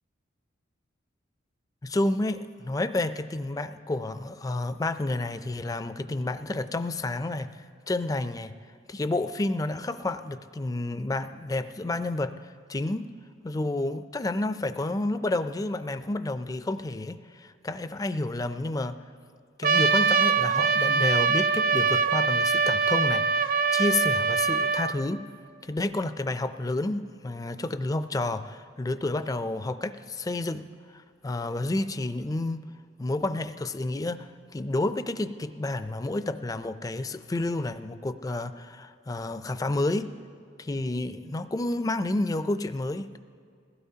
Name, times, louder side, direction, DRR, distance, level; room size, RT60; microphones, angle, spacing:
voice 1, 1.8-7.6 7.9-8.5 8.9-13.1 13.4-19.0 19.6-25.3 25.6-30.7 30.9-32.6 33.0-40.1 40.6-43.2, left 2 dB, 20° left, 11 dB, 0.4 m, -30 dB
Trumpet, 19.6-25.0, right 5 dB, 45° right, 0.4 m, -23 dB
21.5 x 16.0 x 2.8 m, 2.3 s
head